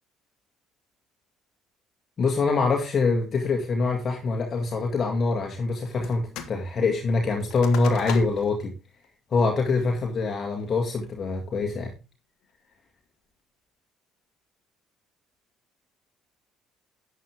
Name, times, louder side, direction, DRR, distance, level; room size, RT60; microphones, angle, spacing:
voice 1, 2.2-8.7 9.3-11.9, left 3 dB, 40° left, 1 dB, 2.0 m, -24 dB
sound 1, 6.0-6.6 6.9-8.6 9.0-9.1 9.6-10.0 10.5-10.9, left 8 dB, 55° left, 1.6 m, -39 dB
12.0 x 8.6 x 3.4 m, 0.29 s
figure-of-eight pair, 50°, 0 cm